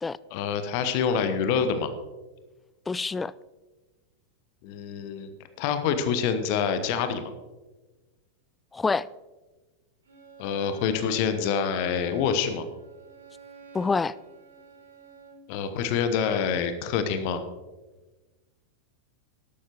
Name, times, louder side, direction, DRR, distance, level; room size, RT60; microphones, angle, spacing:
voice 1, 0.3-1.9 4.6-5.3 5.6-7.3 10.4-12.6 15.5-17.4, left 7 dB, 45° left, 1.0 m, -26 dB
voice 2, 2.9-3.3 8.7-9.1 13.7-14.1, left 4 dB, 15° left, 0.3 m, -26 dB
Bowed string instrument, 10.1-15.5, right 5 dB, 70° right, 2.7 m, -48 dB
13.5 x 12.0 x 3.0 m
figure-of-eight pair, 90°, 0 cm